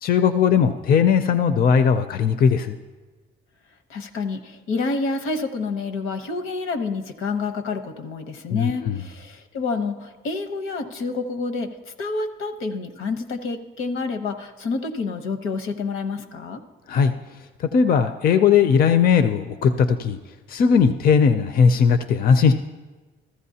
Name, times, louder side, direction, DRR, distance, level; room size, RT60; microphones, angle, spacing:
voice 1, 0.0-2.8 8.5-9.0 16.9-17.1 17.7-20.2 20.5-22.5, left 6 dB, 45° left, 10 dB, 0.5 m, -18 dB
voice 2, 3.9-11.7 12.0-16.6, left 3 dB, 75° left, 8 dB, 1.0 m, -28 dB
14.5 x 14.0 x 2.8 m, 1.3 s
cardioid pair, 125°, 21 cm